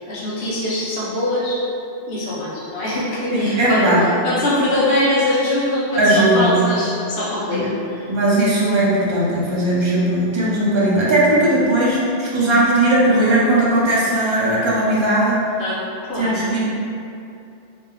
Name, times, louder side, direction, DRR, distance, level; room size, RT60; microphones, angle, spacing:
voice 1, 0.1-1.6 2.1-7.7 15.6-15.8 16.1-16.3, left 1 dB, 60° left, -8 dB, 0.9 m, -22 dB
voice 2, 3.3-4.0 6.0-6.5 7.5-7.6 8.1-15.4 16.2-16.7, right 1 dB, 45° right, -7 dB, 0.4 m, -17 dB
3.4 x 2.5 x 2.2 m, 2.7 s
omnidirectional pair, 1.2 m